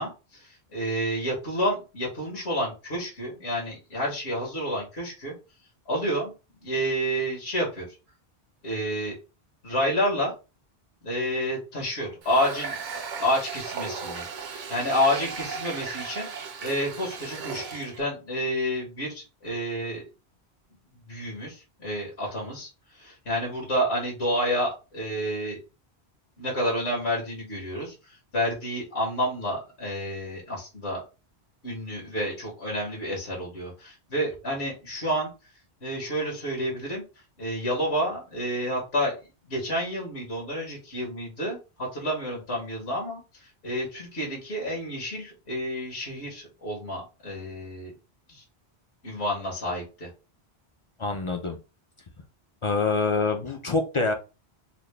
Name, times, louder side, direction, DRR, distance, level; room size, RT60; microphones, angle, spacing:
voice 1, 0.0-5.3 5.9-6.3 6.6-7.9 8.6-9.2 9.6-10.3 11.0-16.3 16.6-20.0 21.1-25.6 26.4-31.0 31.6-35.3 35.8-37.0 37.4-39.1 39.4-47.9 48.3-48.4 49.0-50.1, equal, 80° left, -3 dB, 1.6 m, -29 dB
Water tap faucet, 12.2-18.0, right 5 dB, 55° right, 0.7 m, -36 dB
voice 2, 51.0-51.6 52.6-54.1, left 3 dB, 45° left, 5 dB, 0.4 m, -25 dB
4.1 x 2.1 x 3.3 m, 0.30 s
omnidirectional pair, 1.1 m